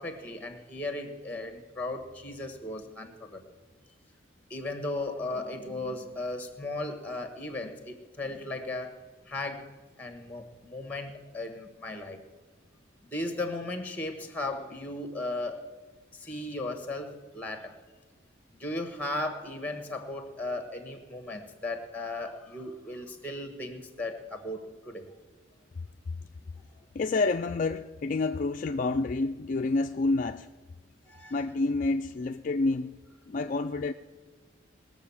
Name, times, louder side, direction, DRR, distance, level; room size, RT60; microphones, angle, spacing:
voice 1, 0.0-3.4 4.5-8.9 9.3-9.6 10.0-12.2 13.1-15.6 16.1-17.7 18.6-25.1 31.1-31.5, left 2 dB, 10° left, 1.4 m, -36 dB
voice 2, 26.9-30.5 31.3-32.9 33.3-33.9, left 3 dB, 40° left, 0.3 m, -28 dB
20.0 x 7.3 x 7.1 m
head